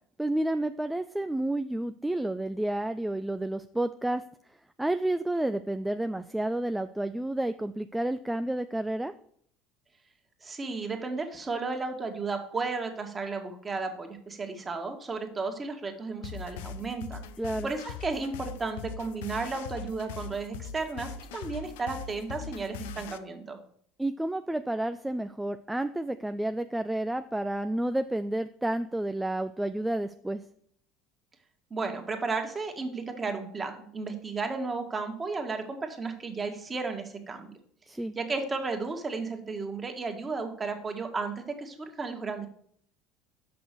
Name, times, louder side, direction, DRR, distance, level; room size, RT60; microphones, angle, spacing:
voice 1, 0.2-4.2 4.8-9.1 17.4-17.7 24.0-30.4 37.9-38.1, right 1 dB, 5° right, 9 dB, 0.4 m, -30 dB
voice 2, 10.4-17.3 17.6-23.6 31.7-37.6 38.2-42.5, right 4 dB, 25° right, 5 dB, 1.8 m, -34 dB
sound 1, 16.2-23.2, left 7 dB, 80° left, 0.6 m, -41 dB
6.1 x 6.0 x 6.8 m, 0.62 s
hypercardioid pair, 75°, 0 cm